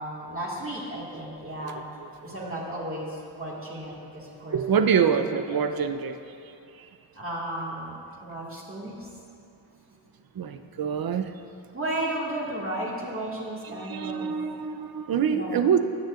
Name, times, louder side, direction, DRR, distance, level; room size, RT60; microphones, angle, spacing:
voice 1, 0.0-1.8 2.2-4.6 4.9-5.6 7.2-9.1 11.7-14.3 15.3-15.7, right 1 dB, 30° right, -5 dB, 2.0 m, -34 dB
voice 2, 4.5-6.2 10.4-11.3 13.6-15.8, right 7 dB, 50° right, 9 dB, 0.6 m, -25 dB
16.5 x 6.4 x 2.5 m, 2.6 s
cardioid pair, 50°, 45 cm